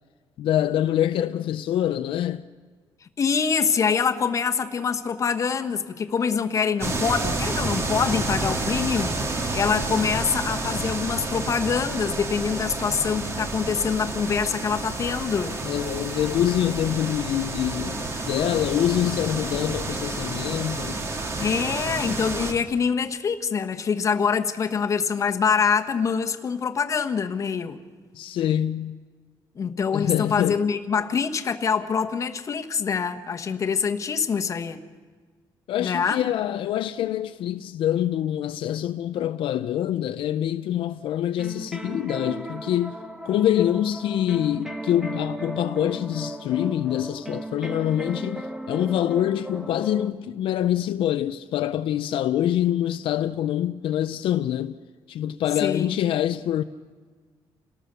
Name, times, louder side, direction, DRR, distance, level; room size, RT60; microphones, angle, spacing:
voice 1, 0.4-2.5 15.6-21.0 28.1-29.0 29.9-30.6 35.7-43.0 43.2-54.8 55.1-56.6, left 11 dB, 75° left, 0.6 m, -25 dB
voice 2, 3.2-15.6 21.4-27.8 29.6-34.8 35.8-36.3 55.6-56.0, left 6 dB, 35° left, 1.3 m, -25 dB
sound 1, 6.8-22.5, right 2 dB, 30° right, 1.9 m, -29 dB
sound 2, 41.4-50.1, right 1 dB, 5° right, 1.0 m, -36 dB
29.0 x 18.0 x 6.9 m
cardioid pair, 165°, 9 cm